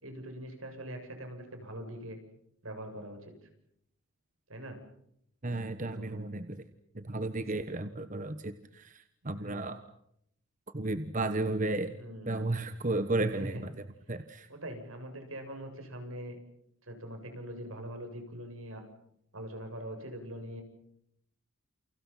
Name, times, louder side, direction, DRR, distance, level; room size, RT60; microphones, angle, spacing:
voice 1, 0.0-2.2 2.6-3.3 4.5-4.8 5.9-6.2 9.2-9.7 12.0-12.4 13.4-13.6 14.5-16.4 16.8-18.8 19.3-20.6, right 1 dB, 80° right, 6 dB, 7.6 m, -43 dB
voice 2, 5.4-6.6 6.9-9.8 10.7-11.9 12.3-13.7 14.1-14.5, right 2 dB, 35° right, 10 dB, 1.2 m, -33 dB
30.0 x 29.5 x 5.8 m, 0.74 s
head